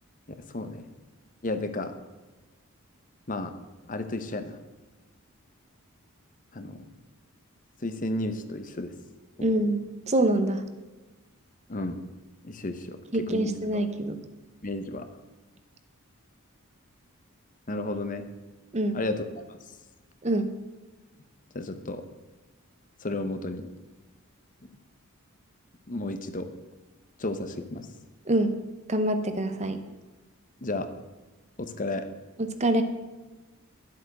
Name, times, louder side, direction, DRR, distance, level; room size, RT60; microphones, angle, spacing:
voice 1, 0.5-0.9 1.4-2.0 3.3-3.5 3.9-4.6 6.5-6.8 7.8-8.9 11.7-12.0 12.4-13.5 13.7-13.8 14.6-15.1 17.7-18.2 18.9-19.6 21.5-22.0 23.0-23.7 25.9-26.5 27.2-27.9 30.6-30.9 31.6-32.0, left 2 dB, 35° left, 9 dB, 0.8 m, -32 dB
voice 2, 9.4-10.6 13.1-14.2 18.7-19.0 20.2-20.5 28.3-28.5 28.9-29.8 32.4-32.8, right 1 dB, 30° right, 8 dB, 0.9 m, -25 dB
11.5 x 8.1 x 6.6 m, 1.2 s
head